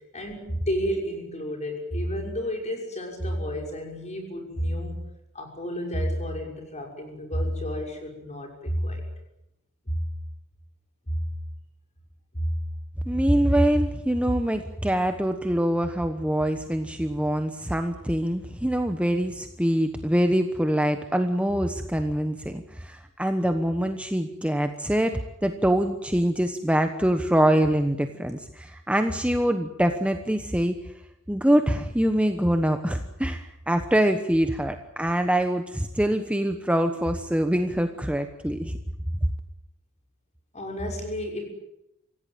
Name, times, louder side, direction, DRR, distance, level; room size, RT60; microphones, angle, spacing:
voice 1, 0.1-5.0 5.3-9.1 9.9-10.0 11.1-11.2 12.3-12.5 40.5-41.5, equal, 30° left, 2 dB, 6.3 m, -30 dB
voice 2, 13.1-30.8 31.3-38.8, right 1 dB, 5° right, 7 dB, 1.1 m, -24 dB
26.0 x 16.5 x 9.1 m, 0.86 s
head